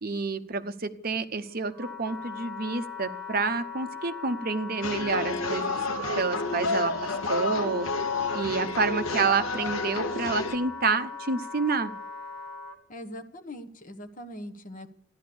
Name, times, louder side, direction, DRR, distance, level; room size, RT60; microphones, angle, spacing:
voice 1, 0.0-5.8 6.2-7.9 8.3-11.9, right 4 dB, 45° right, 10 dB, 0.8 m, -29 dB
Wind instrument woodwind instrument, 1.2-12.8, left 4 dB, 5° left, 1.8 m, -40 dB
sound 1, 4.8-10.6, left 3 dB, 80° left, 1.1 m, -30 dB
voice 2, 12.9-14.9, equal, 40° left, 7 dB, 1.2 m, -41 dB
14.5 x 11.5 x 7.0 m, 0.72 s
head